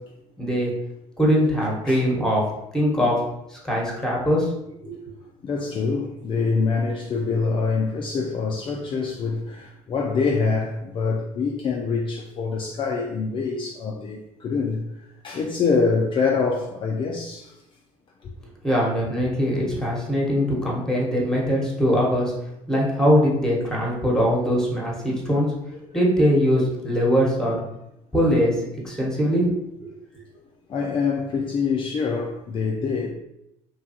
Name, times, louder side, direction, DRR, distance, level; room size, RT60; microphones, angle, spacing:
voice 1, 0.4-0.7 1.2-2.5 2.7-3.2 3.5-4.5 4.8-5.0 18.6-25.5 25.9-27.6 28.1-29.5 29.8-29.9, equal, 5° left, 1.1 m, -22 dB
voice 2, 5.4-14.8 15.2-17.6 25.9-26.0 30.7-33.1, left 4 dB, 35° left, 0.4 m, -25 dB
3.0 x 2.3 x 2.8 m
supercardioid pair, 80°, 15 cm